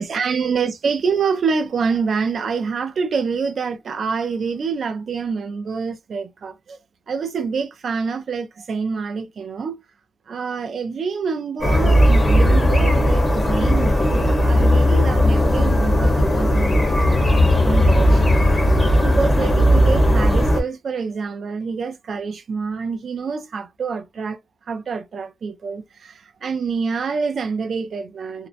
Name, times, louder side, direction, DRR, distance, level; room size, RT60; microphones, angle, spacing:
voice 1, 0.0-6.8 7.1-9.8 10.3-18.3 19.0-24.4 24.7-28.5, right 5 dB, 70° right, 0.4 m, -26 dB
sound 1, 11.6-20.6, equal, 30° left, 0.8 m, -16 dB
2.6 x 2.0 x 2.5 m
wide cardioid pair, 155°, 0 cm